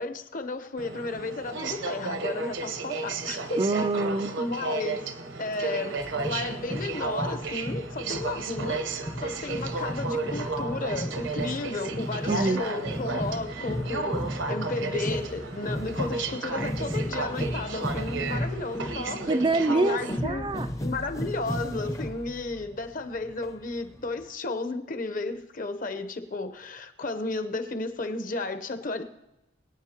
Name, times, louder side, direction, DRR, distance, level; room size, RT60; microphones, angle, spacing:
voice 1, 0.0-3.6 4.4-5.0 5.4-14.2 14.5-19.2 19.7-20.5 20.8-29.0, left 3 dB, 45° left, 8 dB, 0.8 m, -33 dB
Aircraft, 0.8-20.2, right 3 dB, 70° right, 1.0 m, -33 dB
voice 2, 3.6-4.4 12.3-12.6 19.3-20.7, right 3 dB, 25° right, 9 dB, 0.3 m, -25 dB
sound 1, 5.9-24.2, equal, 15° left, 0.6 m, -35 dB
22.5 x 9.5 x 2.9 m, 0.93 s
head